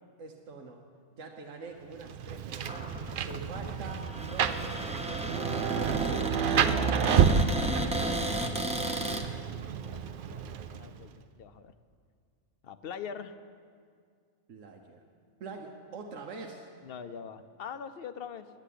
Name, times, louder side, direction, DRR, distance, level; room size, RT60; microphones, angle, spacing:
voice 1, 0.2-0.8 1.2-2.9 3.3-5.6 6.1-6.6 14.5-15.0 15.4-16.7, right 4 dB, 80° right, 1 dB, 1.2 m, -44 dB
Rain, 2.0-11.1, right 7 dB, 60° right, 0.6 m, -30 dB
Cupboard open or close, 2.5-9.2, right 1 dB, 5° right, 0.7 m, -34 dB
voice 2, 6.9-9.0 9.8-10.0 10.3-11.7 12.6-13.4 16.8-18.5, left 7 dB, 60° left, 11 dB, 0.7 m, -44 dB
11.0 x 8.4 x 10.0 m, 2.1 s
omnidirectional pair, 1.3 m